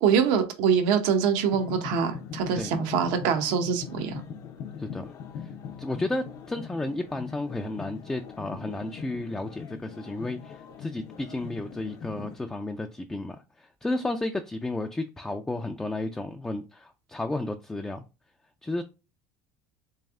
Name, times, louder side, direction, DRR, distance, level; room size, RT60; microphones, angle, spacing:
voice 1, 0.0-4.2, right 7 dB, 75° right, 0.8 m, -24 dB
sound 1, 1.4-12.4, left 7 dB, 50° left, 0.6 m, -41 dB
voice 2, 5.8-18.0 18.6-18.8, left 2 dB, 10° left, 0.4 m, -32 dB
3.4 x 3.2 x 3.5 m
supercardioid pair, 100°, 7 cm